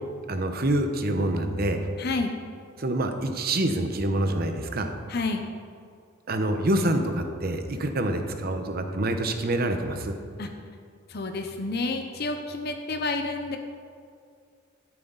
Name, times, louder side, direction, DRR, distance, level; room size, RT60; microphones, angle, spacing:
voice 1, 0.3-1.9 2.8-4.9 6.3-10.1, right 1 dB, 50° right, 6 dB, 1.0 m, -26 dB
voice 2, 2.0-2.3 5.1-5.4 10.4-10.5 11.1-13.6, left 3 dB, 50° left, 5 dB, 0.8 m, -29 dB
12.5 x 10.5 x 4.0 m, 2.2 s
head